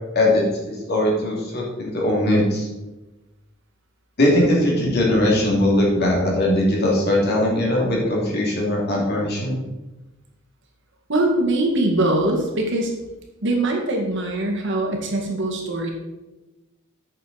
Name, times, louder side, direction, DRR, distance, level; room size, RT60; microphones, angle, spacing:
voice 1, 0.1-2.7 4.2-9.6, left 1 dB, 50° left, -3 dB, 2.6 m, -20 dB
voice 2, 11.1-12.9 13.4-15.9, right 1 dB, 60° right, 1 dB, 1.8 m, -22 dB
8.6 x 6.7 x 4.1 m, 1.1 s
head